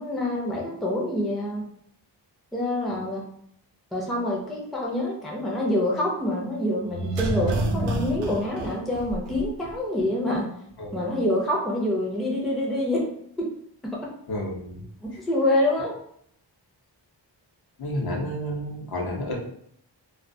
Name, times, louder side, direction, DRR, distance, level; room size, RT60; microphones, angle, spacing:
voice 1, 0.0-1.7 2.5-3.2 3.9-10.5 10.9-13.1 13.8-14.0 15.0-15.9, left 1 dB, ahead, -3 dB, 0.4 m, -26 dB
sound 1, 6.9-9.7 10.0-10.1, right 1 dB, 75° right, 0.5 m, -28 dB
voice 2, 14.3-14.8 17.8-19.4, equal, 55° left, -1 dB, 0.7 m, -31 dB
2.3 x 2.2 x 2.5 m, 0.69 s
wide cardioid pair, 105°, 44 cm